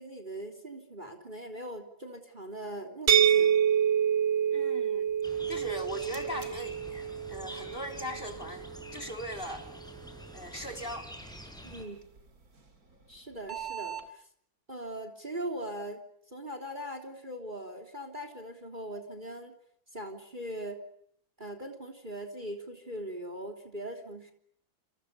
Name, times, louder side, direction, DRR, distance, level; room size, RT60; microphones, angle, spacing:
voice 1, 0.0-3.6 11.6-12.0 13.1-14.2 14.7-16.0 16.3-19.5 19.9-20.8 21.4-24.3, right 1 dB, 25° right, 6 dB, 3.5 m, -40 dB
sound 1, 3.1-8.8, right 9 dB, 75° right, 2.0 m, -27 dB
voice 2, 4.5-5.1 5.5-9.7 10.3-11.1, equal, 25° left, 7 dB, 4.1 m, -40 dB
sound 2, 5.2-11.9, equal, ahead, 7.1 m, -47 dB
sound 3, 5.9-14.1, right 8 dB, 50° right, 3.4 m, -48 dB
28.5 x 28.0 x 6.8 m, 0.72 s
omnidirectional pair, 2.1 m